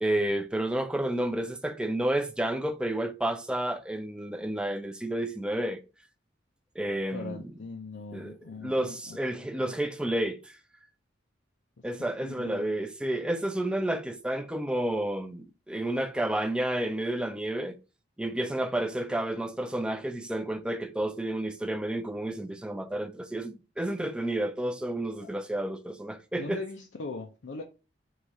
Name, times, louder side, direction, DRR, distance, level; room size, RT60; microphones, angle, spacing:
voice 1, 0.0-5.8 6.8-7.6 8.1-10.6 11.8-17.8 18.2-26.6, right 1 dB, 5° right, 0.3 m, -31 dB
voice 2, 7.1-9.2 9.6-9.7 12.2-12.7 25.2-25.3 26.4-27.6, left 3 dB, 75° left, 0.5 m, -40 dB
4.7 x 2.4 x 4.0 m
head